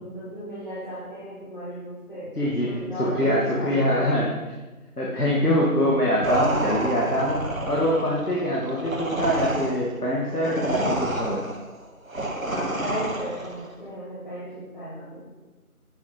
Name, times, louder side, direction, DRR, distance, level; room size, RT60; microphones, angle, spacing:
voice 1, 0.0-2.3 2.6-4.1 5.2-5.4 12.5-15.3, equal, 30° left, -12 dB, 2.3 m, -35 dB
voice 2, 2.4-4.3 5.0-11.4, equal, 80° left, -4 dB, 2.2 m, -24 dB
sound 1, 6.2-13.6, right 1 dB, 60° right, 1.4 m, -29 dB
10.5 x 7.6 x 3.9 m, 1.2 s
figure-of-eight pair, 175°, 45 cm